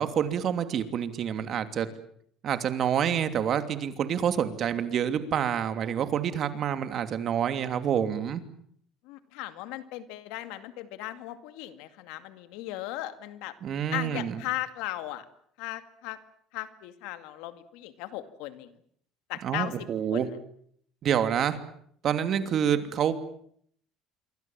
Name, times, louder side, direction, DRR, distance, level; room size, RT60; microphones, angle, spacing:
voice 1, 0.0-1.9 2.4-8.4 13.6-14.4 19.4-20.3 21.0-21.6 22.0-23.1, right 9 dB, 50° right, 9 dB, 2.9 m, -27 dB
voice 2, 9.0-13.5 13.9-15.2 15.6-16.2 16.5-18.8 19.3-19.7 20.1-20.3, left 15 dB, 80° left, 11 dB, 2.2 m, -37 dB
26.5 x 24.5 x 7.4 m, 0.66 s
cardioid pair, 115°, 0 cm